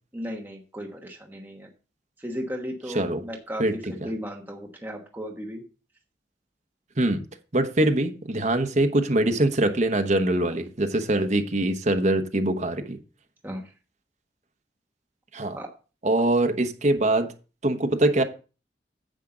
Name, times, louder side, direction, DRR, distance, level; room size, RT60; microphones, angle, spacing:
voice 1, 0.1-1.7 2.2-3.8 4.0-5.6 13.4-13.6 15.5-15.7, equal, 10° right, 1.3 m, -35 dB
voice 2, 2.9-3.2 3.6-4.1 7.0-7.2 7.5-13.0 15.3-15.6 16.0-17.3 17.6-18.2, right 1 dB, 40° right, 1.1 m, -23 dB
10.0 x 7.4 x 3.8 m
head